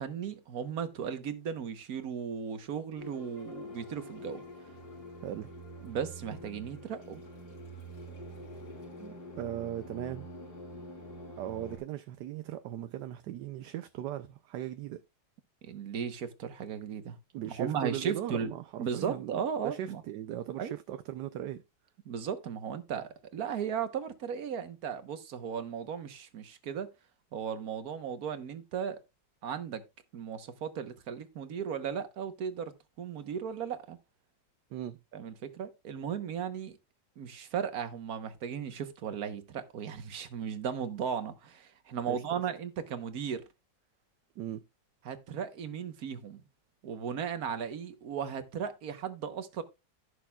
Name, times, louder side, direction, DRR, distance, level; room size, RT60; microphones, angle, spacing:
voice 1, 0.0-4.4 5.8-7.2 15.6-17.2 17.5-18.5 18.8-20.0 20.6-20.7 22.0-26.9 27.3-29.0 29.4-29.8 30.1-32.7 33.0-34.0 35.1-36.8 37.2-43.4 45.0-46.4 46.8-49.6, right 7 dB, 55° right, 1.5 m, -36 dB
sound 1, 3.0-11.8, equal, 60° left, 3.8 m, -46 dB
voice 2, 9.0-10.3 11.4-15.0 17.3-19.4 19.6-21.6 34.7-35.0 42.1-42.4 44.4-44.6, right 12 dB, 75° right, 1.2 m, -38 dB
16.0 x 6.4 x 2.3 m
omnidirectional pair, 1.9 m